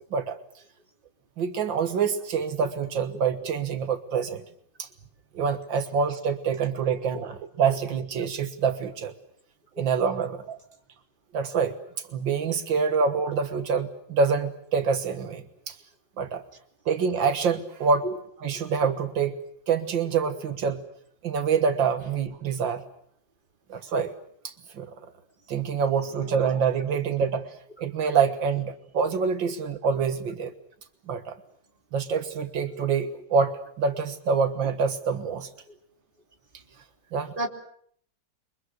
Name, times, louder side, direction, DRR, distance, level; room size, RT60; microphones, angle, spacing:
voice 1, 1.4-4.4 4.8-4.9 5.3-9.1 9.8-10.6 11.3-11.8 12.1-15.8 16.2-16.4 16.9-18.1 18.4-19.4 19.7-20.8 21.2-22.8 23.7-24.1 24.4-24.9 25.5-27.5 27.8-30.5 31.1-31.4 31.9-35.5 37.1-37.5, right 6 dB, 80° right, 2.1 m, -26 dB
voice 2, 6.9-7.2 9.8-9.9 18.0-18.1 26.1-26.3 37.4-37.5, right 1 dB, 25° right, 3.2 m, -32 dB
29.5 x 24.0 x 6.4 m
omnidirectional pair, 2.0 m